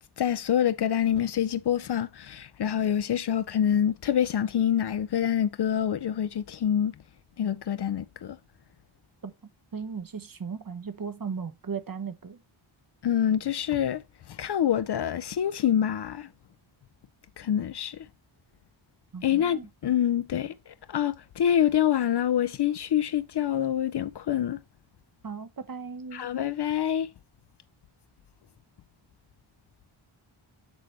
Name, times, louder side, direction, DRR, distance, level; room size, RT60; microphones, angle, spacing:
voice 1, 0.2-6.9 7.4-8.4 13.0-14.0 14.3-16.3 17.4-18.0 19.2-20.5 20.9-24.6 26.1-27.1, left 10 dB, 55° left, 0.5 m, -26 dB
voice 2, 9.7-12.4 19.1-19.7 25.2-26.3, right 5 dB, 45° right, 0.8 m, -36 dB
8.0 x 3.2 x 4.2 m
wide cardioid pair, 65°, 49 cm